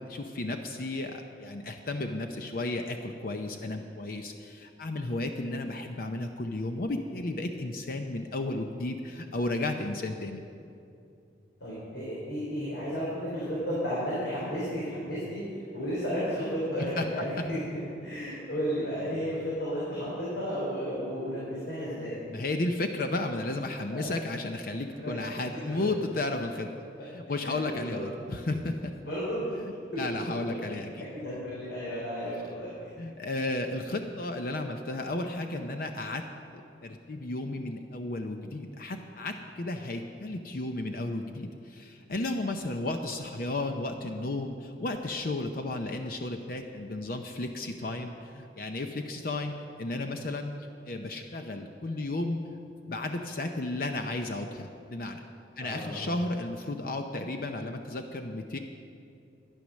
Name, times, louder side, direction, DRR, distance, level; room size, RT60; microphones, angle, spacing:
voice 1, 0.1-10.4 17.0-17.1 22.3-26.7 27.0-28.9 29.6-31.1 33.0-36.2 36.5-50.5 50.9-52.4 52.9-55.2 55.6-58.6, left 2 dB, 55° left, 5 dB, 0.6 m, -33 dB
voice 2, 11.6-15.4 15.7-22.2 23.9-24.1 24.9-25.2 25.5-25.9 27.3-28.0 29.0-29.4 29.9-30.0 31.1-32.7 55.6-56.1, equal, 90° left, -8 dB, 4.0 m, -33 dB
12.5 x 10.0 x 6.3 m, 2.6 s
head